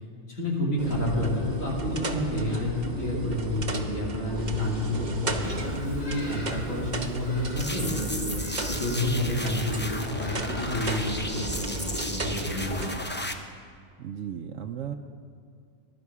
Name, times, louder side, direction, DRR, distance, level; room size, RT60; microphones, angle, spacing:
voice 1, 0.3-8.3 8.7-12.9, left 1 dB, 85° left, -4 dB, 3.1 m, -29 dB
sound 1, 0.8-13.0, right 2 dB, 35° right, 1.0 m, -34 dB
voice 2, 3.2-3.6 14.0-14.9, right 9 dB, 70° right, 4 dB, 1.0 m, -36 dB
Bird vocalization bird call bird song, 5.4-12.7, equal, 65° left, 3.5 m, -45 dB
sound 2, 7.6-13.3, left 1 dB, 10° left, 0.6 m, -35 dB
21.0 x 11.5 x 4.8 m, 2.1 s
omnidirectional pair, 1.4 m